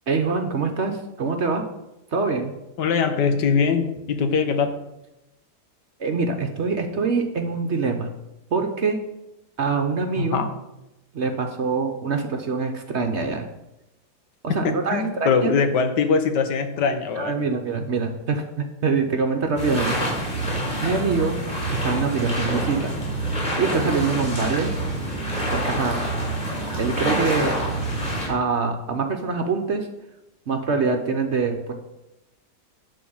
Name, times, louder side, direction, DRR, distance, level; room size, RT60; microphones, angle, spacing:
voice 1, 0.1-1.6 2.1-2.5 6.0-8.1 8.5-9.0 9.6-10.4 11.1-13.5 14.4-15.5 17.2-20.1 20.8-21.4 21.7-22.9 23.6-24.7 25.5-26.0 26.8-27.5 28.3-29.9 30.5-31.7, right 4 dB, 50° right, 5 dB, 1.0 m, -24 dB
voice 2, 2.8-4.7 10.2-10.5 14.9-17.3, left 5 dB, 85° left, 7 dB, 1.6 m, -22 dB
sound 1, 19.6-28.3, right 1 dB, 20° left, 3.7 m, -26 dB
11.0 x 3.9 x 7.1 m, 0.93 s
omnidirectional pair, 1.8 m